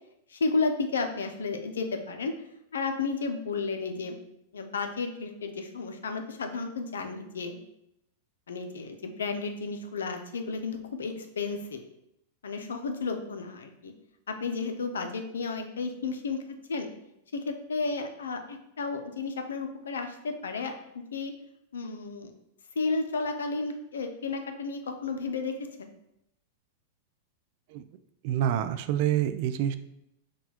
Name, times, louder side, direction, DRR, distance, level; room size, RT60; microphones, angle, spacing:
voice 1, 0.3-2.4 2.7-4.2 4.5-7.6 8.5-11.8 12.4-13.9 14.3-16.9 17.3-21.3 21.7-22.3 22.8-25.9, left 4 dB, 90° left, 6 dB, 0.5 m, -32 dB
voice 2, 28.2-29.8, right 11 dB, 55° right, 10 dB, 0.3 m, -27 dB
6.0 x 2.3 x 2.9 m, 0.80 s
hypercardioid pair, 120°, 0 cm